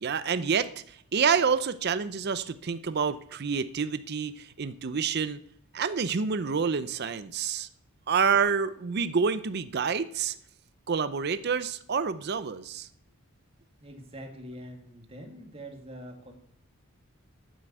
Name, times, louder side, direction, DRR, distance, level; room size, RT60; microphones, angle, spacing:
voice 1, 0.0-5.4 5.7-7.7 8.1-10.4 10.9-12.9, right 6 dB, 50° right, 13 dB, 0.5 m, -28 dB
voice 2, 13.8-16.3, equal, 25° right, 3 dB, 1.9 m, -44 dB
9.4 x 7.7 x 7.9 m, 0.66 s
head